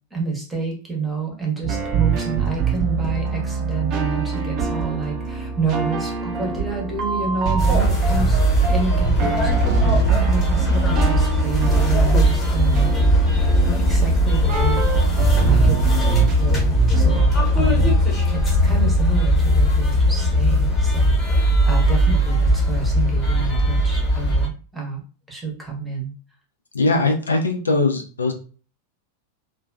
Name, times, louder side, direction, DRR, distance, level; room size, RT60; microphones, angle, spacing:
voice 1, 0.1-8.4 8.7-13.5 13.9-14.9 15.4-25.0 25.3-26.1, right 4 dB, 5° right, -2 dB, 0.9 m, -29 dB
sound 1, 1.6-17.3, right 6 dB, 40° right, 0.4 m, -24 dB
sound 2, 7.6-24.5, equal, 20° left, 1.0 m, -18 dB
voice 2, 26.7-28.3, left 3 dB, 75° left, 4 dB, 0.4 m, -20 dB
2.5 x 2.2 x 2.2 m, 0.38 s
figure-of-eight pair, 90°, 0 cm